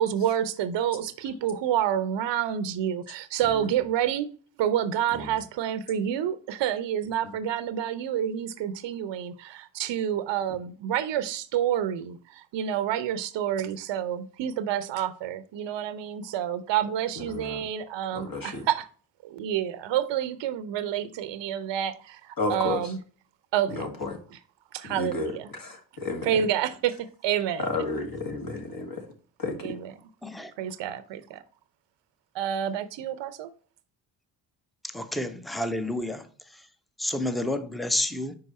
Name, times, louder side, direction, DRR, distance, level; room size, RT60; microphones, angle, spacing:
voice 1, 0.0-4.3 4.6-18.8 19.2-22.9 23.5-23.8 24.7-25.4 26.2-27.0 27.2-27.6 29.6-29.8 30.6-31.4 32.3-33.5, right 10 dB, 60° right, 0.7 m, -28 dB
voice 2, 17.1-17.7 18.1-18.7 22.4-22.9 23.7-24.2 24.8-26.5 27.6-29.1 29.4-29.8, left 3 dB, 45° left, 1.7 m, -32 dB
voice 3, 34.9-36.3 37.0-38.3, left 1 dB, ahead, 0.7 m, -29 dB
5.2 x 4.7 x 4.1 m
hypercardioid pair, 50°, 48 cm